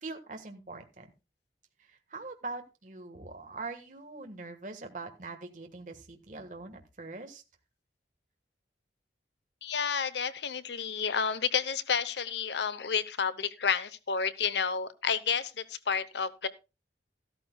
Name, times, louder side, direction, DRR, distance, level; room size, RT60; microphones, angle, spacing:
voice 1, 0.0-1.1 1.8-7.4, right 3 dB, 45° right, 5 dB, 1.5 m, -43 dB
voice 2, 9.6-16.5, left 6 dB, 70° left, 15 dB, 0.8 m, -30 dB
14.0 x 13.0 x 2.2 m, 0.28 s
head